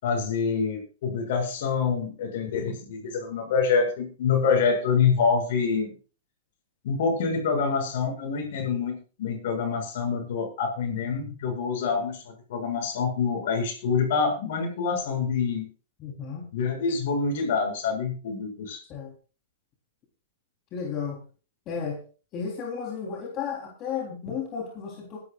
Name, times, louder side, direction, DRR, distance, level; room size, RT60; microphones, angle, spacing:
voice 1, 0.0-5.9 6.8-15.7 16.5-18.8, left 5 dB, 65° left, 3 dB, 7.3 m, -26 dB
voice 2, 16.0-16.4 18.9-19.1 20.7-21.2 21.7-22.0 22.3-25.2, left 6 dB, 35° left, -1 dB, 4.0 m, -33 dB
21.0 x 12.0 x 2.6 m, 0.36 s
hypercardioid pair, 120°, 0 cm